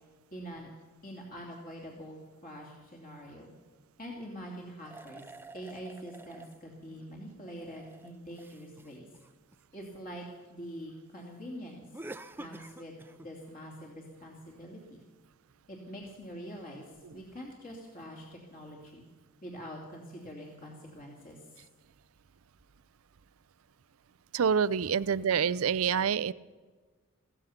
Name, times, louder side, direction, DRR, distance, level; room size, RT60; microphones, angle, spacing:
voice 1, 0.3-0.7 1.0-3.5 4.0-5.2 5.5-9.1 9.7-10.2 10.5-11.9 12.4-15.0 15.7-16.8 17.1-19.1 19.4-21.4, equal, 40° left, -1 dB, 2.7 m, -45 dB
sound 1, 4.8-6.6 7.3-9.9 11.9-13.3, right 2 dB, 10° right, 0.5 m, -48 dB
voice 2, 24.3-26.3, right 7 dB, 85° right, 18 dB, 0.5 m, -27 dB
16.0 x 15.0 x 5.8 m, 1.4 s
head